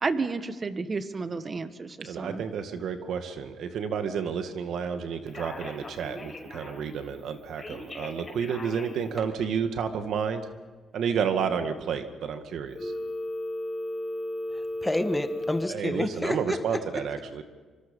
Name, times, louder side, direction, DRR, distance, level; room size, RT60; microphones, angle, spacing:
voice 1, 0.0-2.4, right 4 dB, 35° right, 10 dB, 1.6 m, -31 dB
voice 2, 2.0-10.4 10.9-12.9 15.7-17.4, right 7 dB, 70° right, 7 dB, 2.0 m, -31 dB
Telephone, 5.3-6.9 7.6-9.2 12.7-15.6, left 2 dB, 25° left, 6.7 m, -35 dB
voice 3, 14.5-17.0, left 1 dB, 10° left, 9 dB, 1.4 m, -30 dB
25.5 x 24.5 x 5.5 m, 1.4 s
cardioid pair, 90°, 0 cm